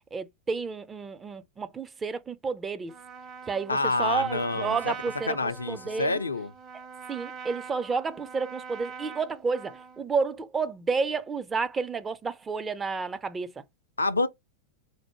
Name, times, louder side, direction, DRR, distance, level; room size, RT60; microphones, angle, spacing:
voice 1, 0.1-2.9 3.5-6.2 7.1-13.6, right 5 dB, 15° right, 0.4 m, -31 dB
Trumpet, 2.9-10.0, right 6 dB, 35° right, 0.8 m, -43 dB
voice 2, 3.7-4.9 5.3-6.5 14.0-14.3, left 3 dB, 80° left, 0.4 m, -27 dB
4.3 x 2.0 x 3.0 m
figure-of-eight pair, 90°, 0 cm